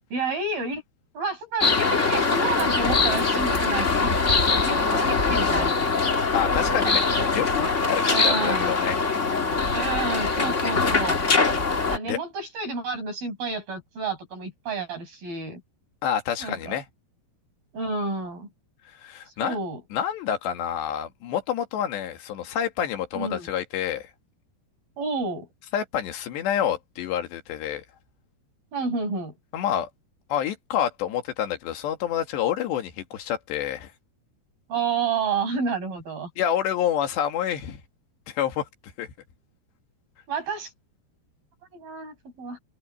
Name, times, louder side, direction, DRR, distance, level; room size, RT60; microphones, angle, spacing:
voice 1, 0.1-0.8 1.2-4.2 4.6-6.1 8.1-8.7 9.7-11.2 11.9-15.6 16.4-16.8 17.7-18.5 19.4-19.8 23.1-23.5 25.0-25.5 28.7-29.4 34.7-36.3 40.3-40.7 41.7-42.6, right 4 dB, 60° right, 8.7 m, -30 dB
sound 1, 1.6-12.0, left 4 dB, 55° left, 0.8 m, -22 dB
voice 2, 6.3-7.0 7.3-9.0 12.1-12.2 16.0-16.9 19.0-19.6 19.9-24.1 25.7-27.9 29.5-29.9 30.3-33.9 36.4-37.8 38.3-38.7 39.0-39.1, left 9 dB, 90° left, 4.3 m, -28 dB
open air
omnidirectional pair, 4.8 m